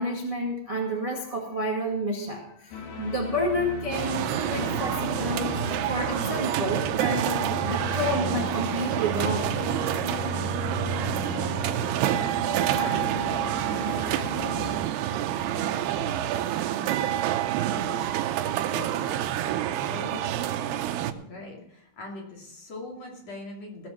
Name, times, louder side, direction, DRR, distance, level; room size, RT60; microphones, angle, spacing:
voice 1, 0.0-5.5 5.9-9.6, equal, 25° right, -1 dB, 0.6 m, -30 dB
sound 1, 2.7-14.8, left 3 dB, 65° left, 3.9 m, -36 dB
sound 2, 3.9-21.1, right 12 dB, 85° right, 2.6 m, -28 dB
voice 2, 10.3-10.8 12.0-19.3 19.8-23.9, left 2 dB, 45° left, -1 dB, 3.4 m, -42 dB
17.5 x 7.2 x 6.2 m, 0.75 s
omnidirectional pair, 4.7 m